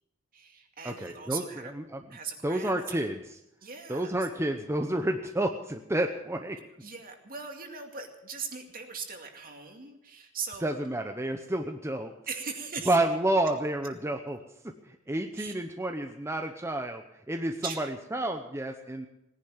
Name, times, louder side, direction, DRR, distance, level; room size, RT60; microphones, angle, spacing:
voice 1, 0.3-1.7 2.1-3.0 3.6-4.2 6.8-10.7 12.3-13.0 15.4-15.5 17.6-17.8, right 5 dB, 45° right, 4 dB, 2.4 m, -39 dB
voice 2, 0.8-2.0 2.4-3.2 3.9-6.6 10.6-12.1 12.9-17.9 18.1-19.1, right 1 dB, 15° right, 4 dB, 0.8 m, -30 dB
18.5 x 10.5 x 7.3 m, 0.87 s
head